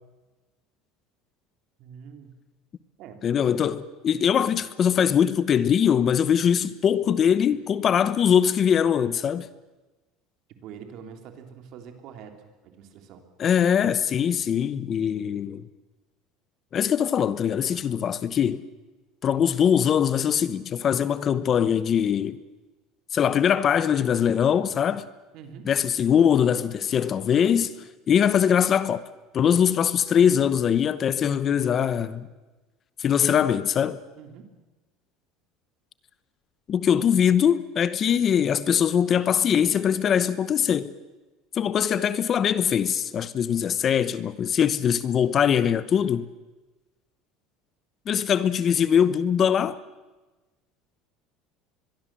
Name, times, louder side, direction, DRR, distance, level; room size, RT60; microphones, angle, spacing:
voice 1, 1.8-2.3 3.0-3.2 10.6-13.2 25.3-25.7 34.2-34.5, right 7 dB, 55° right, 3.4 m, -44 dB
voice 2, 3.2-9.5 13.4-15.6 16.7-18.6 19.2-22.4 23.1-25.1 25.6-27.7 28.1-29.0 29.3-32.3 33.0-34.0 36.7-40.9 41.5-46.3 48.1-49.8, left 8 dB, 30° left, 0.9 m, -22 dB
24.0 x 22.0 x 7.6 m
cardioid pair, 150°, 0 cm